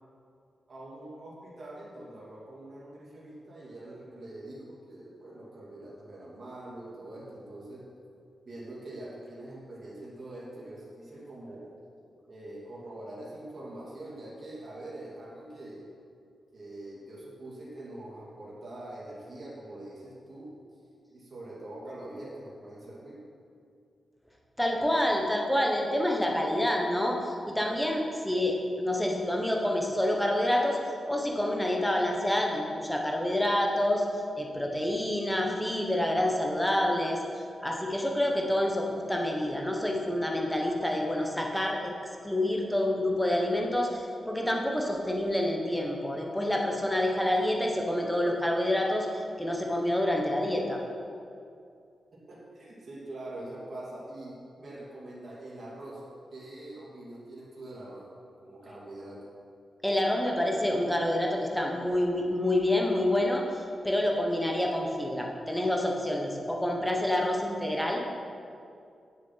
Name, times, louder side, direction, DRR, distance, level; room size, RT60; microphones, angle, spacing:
voice 1, 0.7-7.8 8.4-11.7 12.3-15.9 16.5-20.5 21.1-23.2 52.3-56.0 56.3-58.1 58.4-59.2, right 1 dB, 40° right, -7 dB, 2.6 m, -44 dB
voice 2, 24.6-30.8 31.1-34.1 34.4-37.2 37.6-41.9 42.2-50.8 59.8-68.0, left 1 dB, 5° left, 0 dB, 1.2 m, -28 dB
9.9 x 7.4 x 5.8 m, 2.4 s
wide cardioid pair, 165°, 0 cm